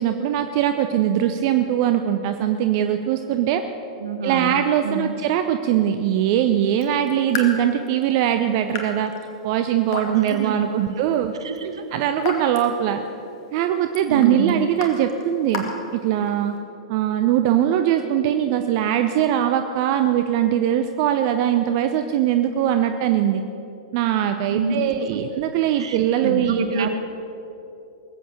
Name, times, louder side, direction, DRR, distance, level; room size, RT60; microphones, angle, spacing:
voice 1, 0.0-3.6 4.2-9.1 9.4-11.3 11.9-13.0 13.5-16.5 16.9-23.4 23.9-26.9, right 10 dB, 45° right, 7 dB, 0.8 m, -21 dB
voice 2, 4.0-4.5 4.8-5.1 10.3-11.0 11.4-11.8 14.1-14.6 24.5-24.7 25.1-25.2 25.8-26.9, right 4 dB, 70° right, 8 dB, 1.5 m, -27 dB
Raindrop / Drip, 6.7-16.6, left 4 dB, 50° left, 2.4 m, -36 dB
21.5 x 8.6 x 6.9 m, 3.0 s
figure-of-eight pair, 100°, 3 cm